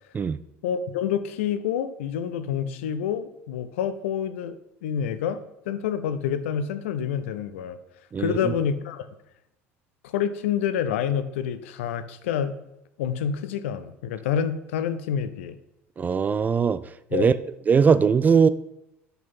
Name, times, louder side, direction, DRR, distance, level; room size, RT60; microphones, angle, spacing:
voice 1, 0.6-7.8 8.2-9.1 10.0-12.6 13.0-15.6 17.1-17.3, left 8 dB, 65° left, 12 dB, 0.6 m, -28 dB
voice 2, 8.1-8.5 16.0-16.8 17.1-17.4 17.7-18.5, right 6 dB, 25° right, 15 dB, 0.3 m, -20 dB
6.1 x 5.7 x 5.4 m, 0.86 s
figure-of-eight pair, 65°, 7 cm